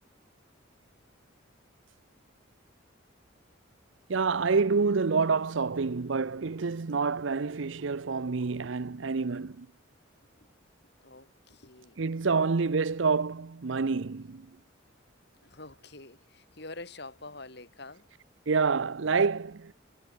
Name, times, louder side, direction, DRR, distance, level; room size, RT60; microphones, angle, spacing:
voice 1, 4.1-9.7 12.0-14.5 18.5-19.7, right 4 dB, 70° right, 0.7 m, -27 dB
voice 2, 11.0-12.0 12.3-12.4 15.4-18.1, left 2 dB, 55° left, 4.8 m, -46 dB
head